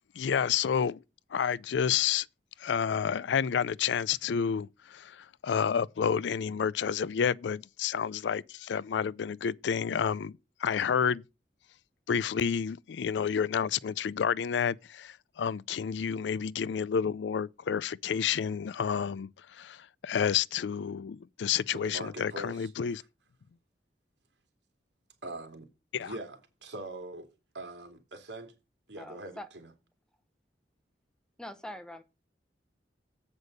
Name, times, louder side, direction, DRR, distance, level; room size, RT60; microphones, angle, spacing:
voice 1, 0.2-1.0 1.3-2.3 2.6-11.2 12.1-23.0 25.9-26.1, left 7 dB, 85° left, 0.4 m, -30 dB
voice 2, 21.7-23.0 25.2-25.7 26.0-28.5 28.9-29.7, right 2 dB, 80° right, 2.5 m, -43 dB
voice 3, 29.0-29.5 31.4-32.0, left 1 dB, 5° left, 0.8 m, -43 dB
8.1 x 5.2 x 6.5 m
head